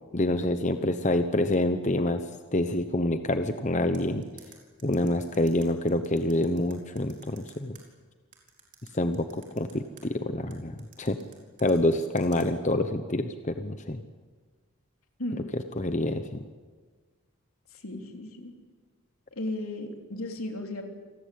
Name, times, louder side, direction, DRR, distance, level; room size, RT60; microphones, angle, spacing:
voice 1, 0.1-2.2 2.5-4.2 4.8-7.8 8.9-11.2 11.6-14.0 15.8-16.4, left 1 dB, 35° left, 8 dB, 1.0 m, -27 dB
sound 1, 3.9-7.8 8.3-10.0 10.5-12.5, right 8 dB, 35° right, 4.6 m, -53 dB
voice 2, 17.7-18.5 19.3-20.9, left 1 dB, 80° left, 4 dB, 3.4 m, -35 dB
28.0 x 19.0 x 8.5 m, 1.4 s
head